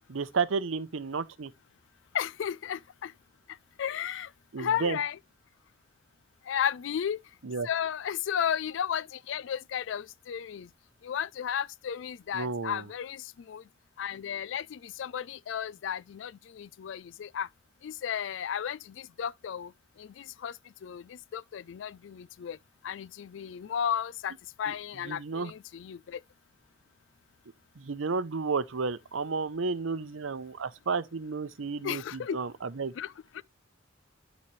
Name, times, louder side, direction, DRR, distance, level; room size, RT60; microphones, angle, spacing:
voice 1, 0.1-1.5 4.5-5.0 7.4-7.7 12.3-12.9 24.7-24.8 25.0-25.5 27.8-32.9, right 4 dB, 80° right, 0.7 m, -32 dB
voice 2, 2.1-3.1 3.8-4.3 4.6-5.2 6.5-7.2 7.6-10.7 11.0-13.6 14.0-17.5 17.8-19.7 20.0-22.6 22.8-26.2 31.8-32.4 33.0-33.4, left 8 dB, 65° left, 0.3 m, -34 dB
11.5 x 4.1 x 3.2 m
head